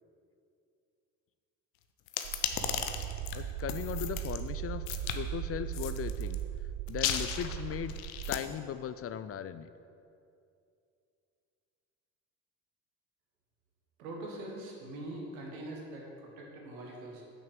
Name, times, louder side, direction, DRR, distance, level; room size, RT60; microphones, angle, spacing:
sound 1, 2.1-4.4 4.9-5.2 5.7-6.3 6.9-8.4, left 10 dB, 80° left, 0.7 m, -35 dB
sound 2, 2.2-8.4, right 12 dB, 65° right, 0.5 m, -38 dB
voice 1, 3.3-4.8 5.1-6.4 6.9-7.9 8.3-9.7, left 9 dB, 35° left, 12 dB, 0.4 m, -38 dB
voice 2, 14.0-17.2, right 1 dB, 85° right, -1 dB, 1.6 m, -43 dB
6.1 x 6.0 x 6.8 m, 2.5 s
hypercardioid pair, 55°, 41 cm